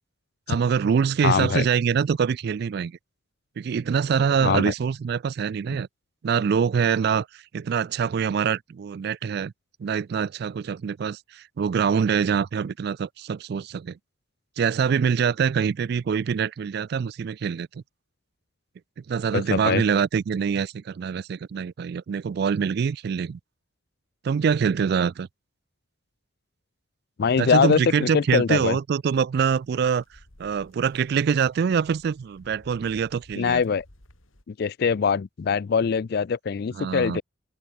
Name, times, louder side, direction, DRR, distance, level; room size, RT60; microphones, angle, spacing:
voice 1, 0.5-2.9 3.6-5.9 6.2-7.3 7.5-9.5 9.8-14.0 14.6-17.8 19.1-23.4 24.2-25.3 27.4-30.0 30.4-33.6 36.7-37.2, right 6 dB, 55° right, 0.3 m, -24 dB
voice 2, 1.2-1.6 4.4-4.7 19.3-19.8 27.2-28.8 33.4-33.8 34.5-37.2, left 6 dB, 50° left, 0.4 m, -23 dB
sound 1, 29.4-34.4, left 1 dB, 85° left, 4.1 m, -55 dB
open air
head